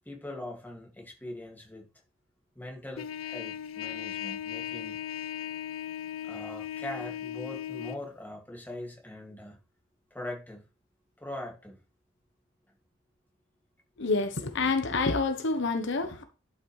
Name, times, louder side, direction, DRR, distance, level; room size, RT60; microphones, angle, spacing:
voice 1, 0.1-1.9 2.6-5.0 6.2-9.6 10.1-10.7 11.2-11.8, left 1 dB, 10° left, 2.1 m, -41 dB
Trumpet, 3.0-8.0, left 10 dB, 85° left, 0.4 m, -37 dB
voice 2, 14.0-16.2, left 3 dB, 65° left, 1.0 m, -28 dB
11.5 x 5.7 x 3.2 m
head